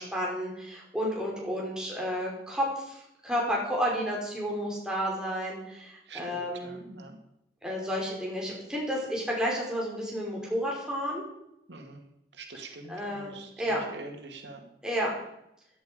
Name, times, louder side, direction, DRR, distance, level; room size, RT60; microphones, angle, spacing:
voice 1, 0.0-6.8 7.6-11.2 12.9-13.8 14.8-15.1, equal, 5° right, -3 dB, 5.0 m, -31 dB
voice 2, 6.1-7.2 11.7-12.0 12.3-14.7, right 3 dB, 85° right, 3 dB, 2.1 m, -45 dB
16.0 x 10.5 x 5.2 m, 0.81 s
head